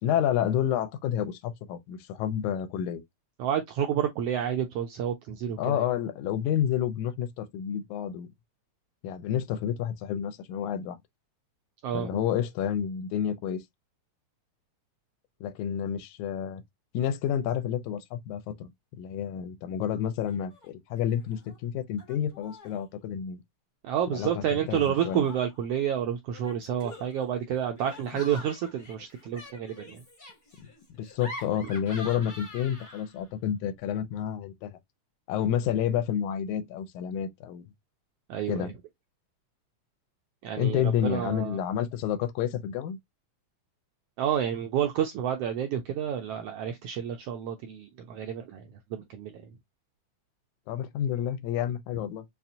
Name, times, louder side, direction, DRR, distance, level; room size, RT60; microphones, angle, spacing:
voice 1, 0.0-3.0 5.6-8.3 9.0-11.0 11.9-13.6 15.4-16.6 16.9-18.7 19.0-23.4 24.1-25.3 31.0-34.8 35.3-37.7 38.5-38.7 40.6-43.0 50.7-52.3, left 9 dB, 90° left, 2.1 m, -29 dB
voice 2, 3.4-5.8 11.8-12.2 23.8-30.0 38.3-38.7 40.4-41.6 44.2-49.4, right 9 dB, 85° right, 1.4 m, -30 dB
Laughter, 20.3-20.7 21.0-21.6 22.0-22.8 24.1-25.7 26.3-33.3, left 1 dB, 50° left, 0.5 m, -46 dB
5.5 x 2.4 x 2.5 m
omnidirectional pair, 3.3 m